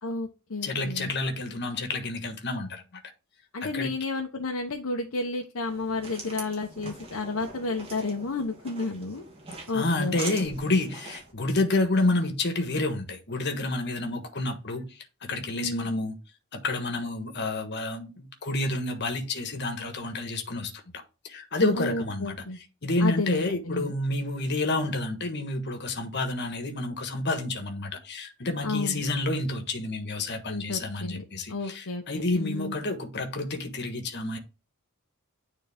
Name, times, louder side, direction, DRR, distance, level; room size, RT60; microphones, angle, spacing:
voice 1, 0.0-1.1 3.5-9.2 9.7-10.4 15.5-16.1 21.7-22.6 23.0-23.9 28.6-29.1 30.5-31.2 31.5-32.0 32.3-32.8, left 3 dB, 70° left, 0.9 m, -32 dB
voice 2, 0.6-2.8 3.6-3.9 9.7-16.1 16.5-20.7 21.2-22.3 22.8-34.4, left 2 dB, 50° left, 1.4 m, -29 dB
sound 1, 5.6-11.3, right 2 dB, 25° right, 2.7 m, -42 dB
9.5 x 3.9 x 3.5 m
head